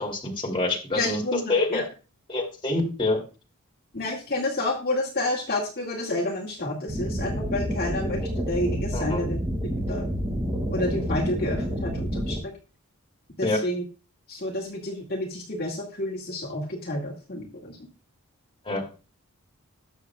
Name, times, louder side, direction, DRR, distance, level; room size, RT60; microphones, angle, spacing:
voice 1, 0.0-1.8 2.3-3.2 8.9-9.2 13.4-13.6 18.6-18.8, left 2 dB, 25° left, -1 dB, 2.7 m, -26 dB
voice 2, 1.0-1.8 3.9-8.2 8.5-9.4 9.9-10.1 10.7-12.5 13.4-13.8 14.3-17.8, left 1 dB, 45° left, -2 dB, 2.1 m, -29 dB
sound 1, 6.9-12.4, equal, 25° right, 4.4 m, -29 dB
20.5 x 6.8 x 2.4 m, 0.33 s
head